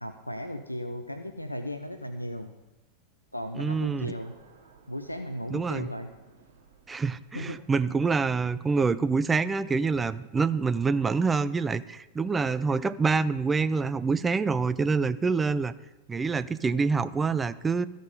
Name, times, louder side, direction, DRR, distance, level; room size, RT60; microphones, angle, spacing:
voice 1, 0.0-2.5 3.3-4.3 4.9-6.1 7.3-7.6, equal, 85° left, 8 dB, 0.5 m, -36 dB
voice 2, 3.6-4.1 5.5-5.9 6.9-15.7 16.1-17.9, right 4 dB, 15° right, 14 dB, 0.4 m, -26 dB
sound 1, 3.6-9.5, right 4 dB, 60° right, 2.2 m, -58 dB
14.0 x 5.1 x 5.5 m, 1.0 s
figure-of-eight pair, 90°, 0 cm